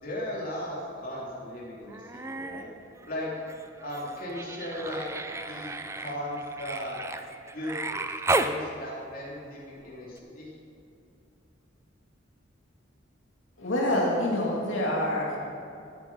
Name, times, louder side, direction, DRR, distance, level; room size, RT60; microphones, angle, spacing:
voice 1, 0.0-2.7 3.0-3.3 3.8-5.1 5.4-7.0 7.5-8.0 8.3-10.5, left 1 dB, 45° left, -5 dB, 3.1 m, -37 dB
Human voice, 1.9-2.7 3.0-8.6 10.2-10.3, right 2 dB, 15° right, 0.5 m, -33 dB
voice 2, 13.6-15.4, left 1 dB, 90° left, -3 dB, 2.6 m, -26 dB
17.0 x 9.0 x 5.4 m, 2.6 s
head